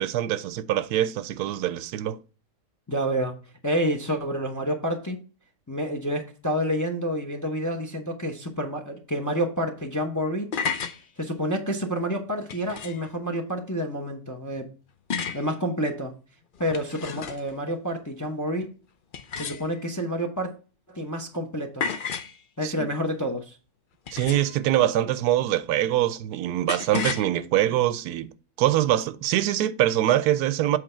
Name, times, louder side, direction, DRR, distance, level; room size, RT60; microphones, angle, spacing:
voice 1, 0.0-2.2 22.6-22.9 24.1-28.3 28.6-30.8, right 12 dB, 85° right, 1.1 m, -24 dB
voice 2, 2.9-3.4 3.6-5.2 5.7-10.5 11.2-14.7 15.3-16.1 16.6-18.7 19.4-20.5 20.9-21.8 22.6-23.5, equal, 15° left, 0.6 m, -28 dB
sound 1, 10.3-11.0 12.5-13.1 15.1-15.5 16.6-17.6 19.1-20.0 21.8-22.4 24.1-24.6 26.7-27.3, left 6 dB, 65° left, 0.5 m, -32 dB
7.7 x 4.2 x 4.3 m
omnidirectional pair, 1.6 m